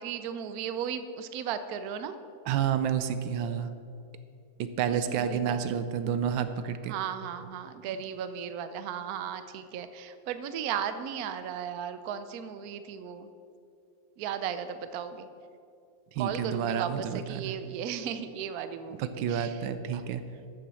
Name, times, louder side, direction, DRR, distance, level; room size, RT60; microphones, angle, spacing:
voice 1, 0.0-2.2 4.9-5.7 6.8-13.3 14.2-15.3 16.2-19.7 19.9-20.0, right 8 dB, 65° right, 10 dB, 1.0 m, -36 dB
voice 2, 2.5-3.7 4.6-6.9 16.1-17.6 19.0-20.2, right 8 dB, 80° right, 11 dB, 1.4 m, -30 dB
13.0 x 7.1 x 6.3 m, 2.4 s
omnidirectional pair, 2.1 m